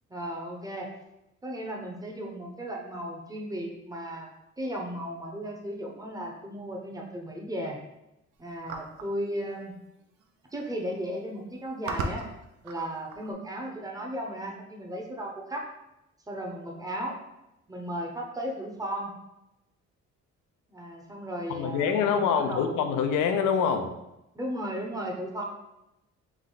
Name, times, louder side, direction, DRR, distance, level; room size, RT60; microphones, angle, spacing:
voice 1, 0.1-0.9 1.4-4.3 4.6-7.8 8.4-9.7 10.5-12.3 12.6-15.7 16.3-17.2 17.7-19.1 20.7-22.7 24.3-25.4, equal, 10° right, 0 dB, 0.9 m, -35 dB
sound 1, 8.7-9.1 10.2-10.3 10.5-10.9 11.5-13.3, right 3 dB, 80° right, 0.6 m, -36 dB
voice 2, 21.5-23.9, left 7 dB, 85° left, 6 dB, 0.6 m, -25 dB
3.5 x 3.2 x 3.9 m, 0.91 s
cardioid pair, 90°, 30 cm